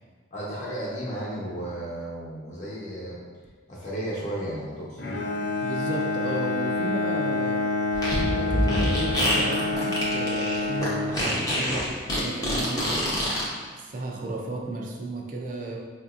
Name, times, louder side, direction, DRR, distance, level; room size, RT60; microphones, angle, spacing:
voice 1, 0.3-3.2 3.7-5.0, right 1 dB, 40° left, -7 dB, 0.9 m, -33 dB
Bowed string instrument, 5.0-11.7, left 2 dB, 60° left, 0.5 m, -28 dB
voice 2, 5.6-7.6 8.1-13.0 13.6-15.8, right 1 dB, 45° right, 0 dB, 0.4 m, -34 dB
Fart, 7.9-13.4, equal, 20° left, 0.6 m, -26 dB
4.4 x 2.6 x 2.4 m, 1.5 s
head